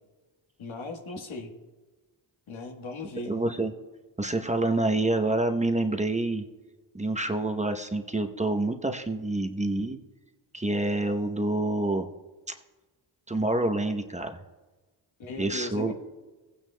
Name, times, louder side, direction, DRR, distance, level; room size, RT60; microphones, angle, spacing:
voice 1, 0.6-1.5 2.5-3.3 15.2-15.9, left 2 dB, 85° left, 3 dB, 1.4 m, -37 dB
voice 2, 3.3-3.7 4.2-6.5 6.9-10.0 10.5-12.1 13.3-14.4 15.4-15.9, right 2 dB, 15° right, 5 dB, 0.8 m, -27 dB
16.0 x 9.2 x 2.2 m, 1.2 s
cardioid pair, 60°, 46 cm